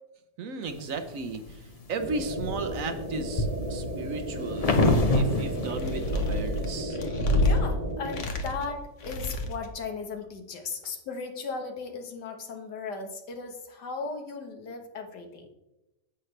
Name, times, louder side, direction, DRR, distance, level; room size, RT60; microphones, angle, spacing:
voice 1, 0.4-7.0, right 3 dB, 60° right, 8 dB, 1.1 m, -35 dB
sound 1, 0.8-1.5 2.0-6.8, left 2 dB, 30° left, 0.7 m, -27 dB
sound 2, 2.0-8.2, right 1 dB, 35° right, 1.2 m, -34 dB
sound 3, 4.6-5.3 5.7-7.6 8.1-8.7 9.0-9.7, left 1 dB, 50° left, 1.3 m, -28 dB
voice 2, 7.1-15.5, left 4 dB, 80° left, 4 dB, 1.9 m, -37 dB
10.5 x 8.1 x 3.3 m, 0.95 s
omnidirectional pair, 1.8 m